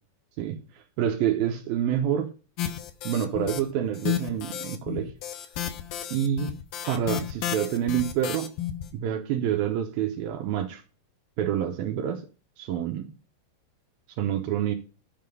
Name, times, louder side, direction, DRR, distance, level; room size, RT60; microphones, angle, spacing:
voice 1, 1.0-2.3 3.0-5.1 6.1-6.6 6.9-8.5 8.9-10.8 11.4-12.2 12.6-13.1 14.2-14.8, right 10 dB, 75° right, 2.6 m, -27 dB
sound 1, 2.6-3.6 4.0-8.9, left 11 dB, 75° left, 2.7 m, -32 dB
9.5 x 7.7 x 5.4 m
omnidirectional pair, 4.4 m